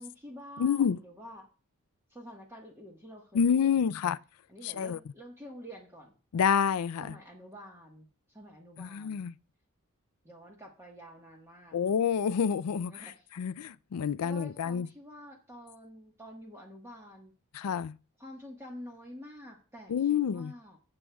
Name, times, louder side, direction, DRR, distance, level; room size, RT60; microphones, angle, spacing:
voice 1, 0.0-1.5 2.1-4.0 4.5-6.1 7.0-9.2 10.2-11.8 12.6-13.3 14.2-17.3 18.2-20.8, equal, 10° right, 1.4 m, -48 dB
voice 2, 0.6-1.0 3.3-4.2 4.6-5.0 6.3-7.1 8.8-9.3 11.7-13.1 13.4-14.9 17.5-18.0 19.9-20.5, left 7 dB, 85° left, 0.4 m, -28 dB
17.0 x 7.6 x 2.3 m
head